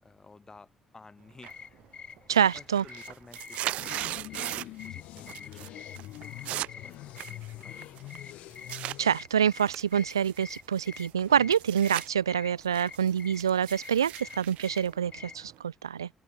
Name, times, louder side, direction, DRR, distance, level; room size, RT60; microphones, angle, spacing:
voice 1, 0.0-1.8 2.5-5.9 6.2-8.1 11.3-11.6, left 3 dB, 30° left, 6.9 m, -54 dB
sound 1, 1.4-15.5, left 6 dB, 45° left, 5.9 m, -48 dB
sound 2, 1.4-1.8 2.2-4.9 5.2-5.7 5.9-9.0 9.5-12.1 12.4-15.6, right 15 dB, 65° right, 1.5 m, -38 dB
voice 2, 2.3-2.8 9.0-16.1, right 8 dB, 85° right, 0.4 m, -26 dB
sound 3, 3.8-9.2, left 17 dB, 65° left, 2.6 m, -45 dB
open air
figure-of-eight pair, 45°, 2 cm